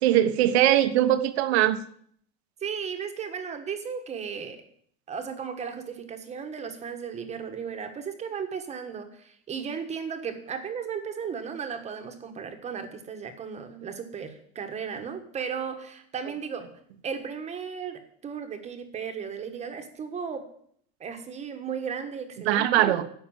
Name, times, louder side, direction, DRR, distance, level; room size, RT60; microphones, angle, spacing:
voice 1, 0.0-1.8 22.5-23.0, right 12 dB, 85° right, 9 dB, 1.2 m, -21 dB
voice 2, 2.6-4.6 5.1-16.7 17.0-20.4 21.0-23.0, right 6 dB, 20° right, 7 dB, 1.3 m, -35 dB
11.0 x 6.7 x 9.0 m, 0.63 s
supercardioid pair, 160°, 31 cm